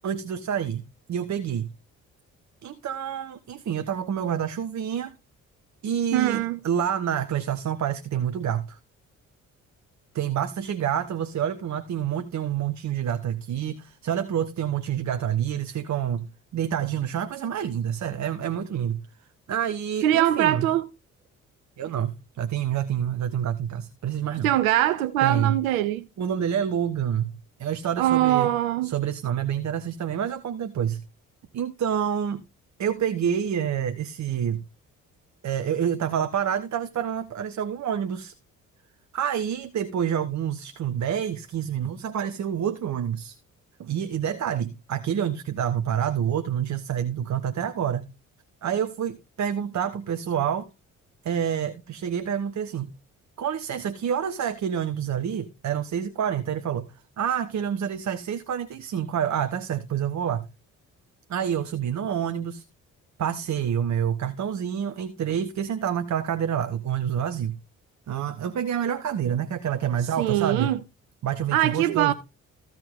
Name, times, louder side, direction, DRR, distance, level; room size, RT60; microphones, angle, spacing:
voice 1, 0.0-0.8 1.1-1.7 2.6-5.1 5.8-8.8 10.1-19.0 19.5-20.7 21.8-24.5 25.2-25.5 26.2-27.3 27.6-28.5 28.8-31.0 31.5-32.4 32.8-34.6 35.4-38.3 39.1-43.4 43.8-48.1 48.6-50.7 51.2-52.9 53.4-56.8 57.2-60.4 61.3-62.6 63.2-67.6 68.1-70.7 71.2-72.1, right 9 dB, 40° right, 1.1 m, -28 dB
voice 2, 6.1-6.6 20.0-20.9 24.4-26.1 28.0-28.9 70.2-70.8 71.5-72.1, right 13 dB, 75° right, 0.6 m, -22 dB
15.0 x 6.0 x 3.7 m
figure-of-eight pair, 40°, 41 cm